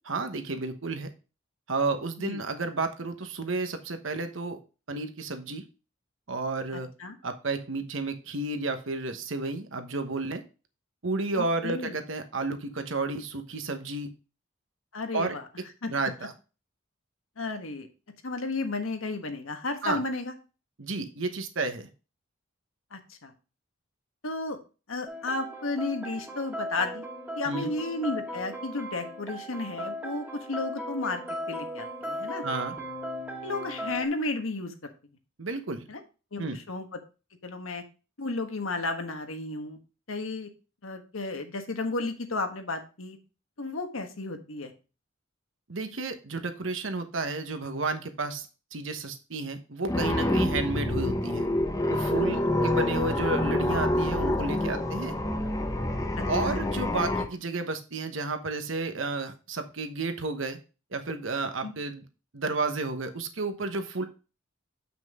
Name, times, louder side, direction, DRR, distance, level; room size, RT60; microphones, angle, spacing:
voice 1, 0.0-1.1 1.7-4.6 4.9-5.6 6.3-6.9 7.2-10.4 11.0-14.1 15.1-15.4 15.9-16.3 19.8-20.0 20.8-21.9 27.4-27.7 32.4-32.7 35.4-35.9 36.4-36.6 45.7-51.5 51.9-55.2 56.2-60.6 60.9-62.0 62.3-64.0, right 3 dB, 70° right, 8 dB, 1.1 m, -32 dB
voice 2, 11.4-12.0 14.9-15.4 15.8-15.9 17.4-17.9 18.2-20.3 22.9-23.3 24.2-24.6 24.9-27.0 27.4-31.2 31.5-32.4 33.4-34.7 35.9-36.0 36.3-36.8 37.4-37.8 38.2-39.8 40.1-40.5 40.8-43.2 43.6-44.7 56.4-56.6 61.6-61.7, left 3 dB, 85° left, 5 dB, 1.4 m, -33 dB
sound 1, 25.1-34.1, equal, 10° right, 1.6 m, -37 dB
sound 2, 49.9-57.3, left 1 dB, 15° left, 1.1 m, -27 dB
7.6 x 6.0 x 3.6 m, 0.32 s
head